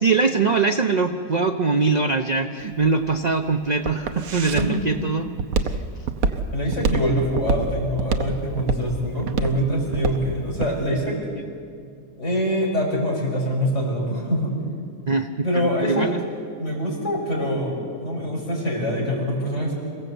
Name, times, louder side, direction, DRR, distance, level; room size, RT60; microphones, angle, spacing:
voice 1, 0.0-5.3 5.6-5.8 15.1-16.2, right 4 dB, 45° right, 7 dB, 0.5 m, -22 dB
Walk footsteps, 2.6-10.8, right 4 dB, 60° right, 1.3 m, -26 dB
voice 2, 6.5-11.2 12.2-14.5 15.4-16.1 16.6-19.7, equal, 45° left, -2 dB, 6.0 m, -24 dB
27.0 x 16.5 x 8.0 m, 2.2 s
omnidirectional pair, 1.7 m